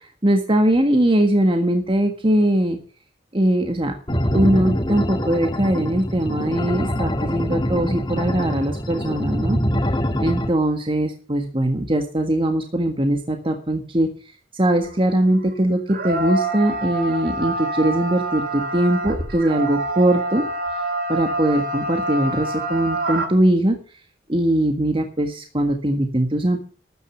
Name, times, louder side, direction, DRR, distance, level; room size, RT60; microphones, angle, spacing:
voice 1, 0.2-2.8 3.3-3.9 4.3-9.6 10.2-14.1 14.5-15.8 16.0-20.4 21.1-23.8 24.3-26.6, right 1 dB, 30° right, 5 dB, 1.6 m, -20 dB
sound 1, 4.1-10.5, equal, 25° left, 2.2 m, -24 dB
sound 2, 14.8-14.9 15.9-23.3, right 2 dB, 55° right, 2.8 m, -26 dB
13.5 x 9.3 x 5.6 m, 0.41 s
head